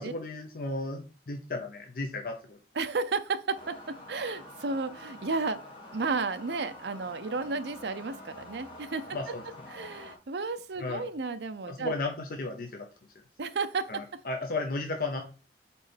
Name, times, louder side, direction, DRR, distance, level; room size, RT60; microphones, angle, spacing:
voice 1, 0.0-2.6 9.1-9.4 10.8-11.0 11.7-12.8 13.9-15.2, left 2 dB, 55° left, 3 dB, 0.8 m, -34 dB
voice 2, 2.7-5.6 5.9-9.3 9.7-11.9 13.4-14.0, right 4 dB, 70° right, 10 dB, 0.6 m, -33 dB
sound 1, 3.5-10.2, left 1 dB, 30° left, 1.8 m, -47 dB
4.4 x 4.3 x 5.1 m, 0.35 s
head